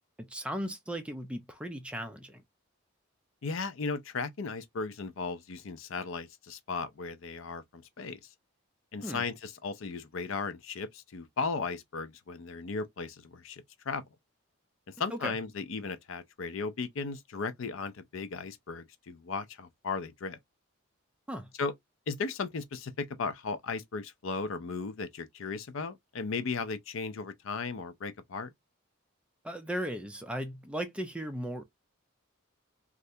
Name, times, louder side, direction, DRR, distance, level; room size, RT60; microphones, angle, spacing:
voice 1, 0.2-2.4 9.0-9.2 15.1-15.3 21.3-21.5 29.4-31.6, equal, 5° right, 0.4 m, -37 dB
voice 2, 3.4-8.2 8.9-14.1 15.0-20.4 21.6-21.7 22.1-28.5, left 4 dB, 70° left, 0.5 m, -36 dB
3.2 x 2.4 x 2.6 m
head